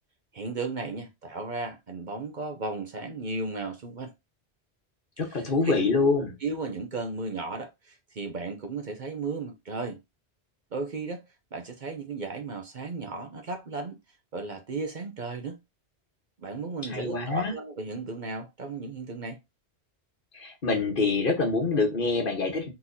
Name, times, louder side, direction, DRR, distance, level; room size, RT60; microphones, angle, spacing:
voice 1, 0.3-4.1 5.4-5.5 6.4-10.0 10.7-11.2 11.5-14.0 14.3-15.6 16.4-19.4, right 3 dB, 50° right, 0.8 m, -35 dB
voice 2, 5.2-6.3 16.9-17.5 20.3-22.7, left 3 dB, 50° left, 1.4 m, -26 dB
4.4 x 3.9 x 2.7 m
omnidirectional pair, 1.1 m